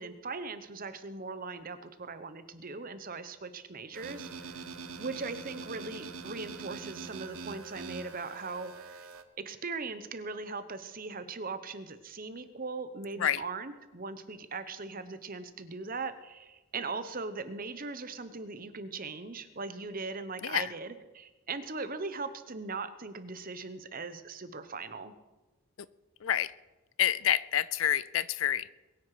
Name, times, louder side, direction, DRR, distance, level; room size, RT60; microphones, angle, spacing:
voice 1, 0.0-4.6 5.0-9.1 9.4-25.1, right 4 dB, 40° right, 11 dB, 1.0 m, -39 dB
sound 1, 3.9-9.2, right 4 dB, 70° right, 1.0 m, -43 dB
voice 2, 26.2-26.5 27.0-28.7, left 10 dB, 60° left, 18 dB, 0.4 m, -28 dB
22.0 x 9.9 x 4.9 m, 1.1 s
head